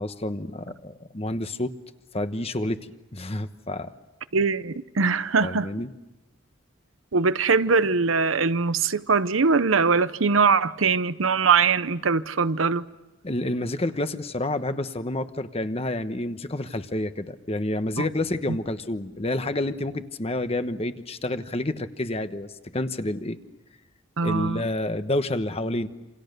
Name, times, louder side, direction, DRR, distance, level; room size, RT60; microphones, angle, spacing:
voice 1, 0.0-1.7 2.1-2.8 3.1-3.9 5.4-5.9 13.2-23.4 24.2-25.9, left 1 dB, 30° left, 1.1 m, -29 dB
voice 2, 4.3-5.7 7.1-12.8 18.0-18.1 24.2-24.6, right 5 dB, 80° right, 0.9 m, -22 dB
28.0 x 27.5 x 6.8 m
head